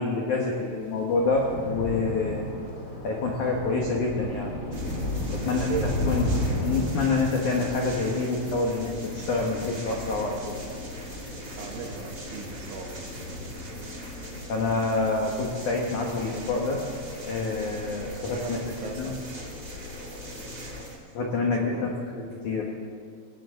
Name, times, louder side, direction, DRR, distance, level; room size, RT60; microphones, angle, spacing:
voice 1, 0.0-2.4 3.0-4.5 5.3-5.8 6.1-6.3 6.6-10.5 14.5-16.8 17.2-18.6 19.0-19.1 21.1-22.7, left 3 dB, 75° left, -1 dB, 1.8 m, -27 dB
Thunder / Rain, 0.7-17.3 17.6-18.0 18.3-18.5, left 1 dB, 35° left, 1.4 m, -35 dB
sound 1, 4.1-20.8, left 2 dB, 50° left, 2.0 m, -41 dB
sound 2, 4.7-21.0, right 2 dB, 30° right, 1.4 m, -44 dB
voice 2, 5.4-6.0 11.5-13.1 18.4-19.2 21.5-22.0, right 6 dB, 75° right, 4 dB, 3.5 m, -37 dB
19.5 x 17.5 x 3.9 m, 2.2 s
omnidirectional pair, 5.8 m